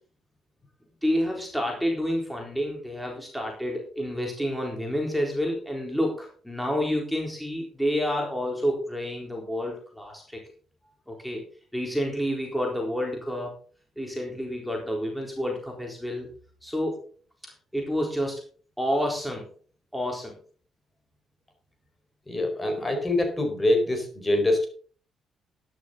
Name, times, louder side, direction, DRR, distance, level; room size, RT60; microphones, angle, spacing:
voice 1, 1.0-10.4 11.1-11.4 11.7-13.5 14.0-16.3 16.6-17.0 17.7-18.4 18.8-19.5 19.9-20.4, equal, ahead, 0 dB, 3.9 m, -29 dB
voice 2, 22.3-24.7, left 1 dB, 20° left, 5 dB, 4.7 m, -24 dB
12.5 x 11.0 x 3.9 m, 0.42 s
cardioid pair, 90°, 0 cm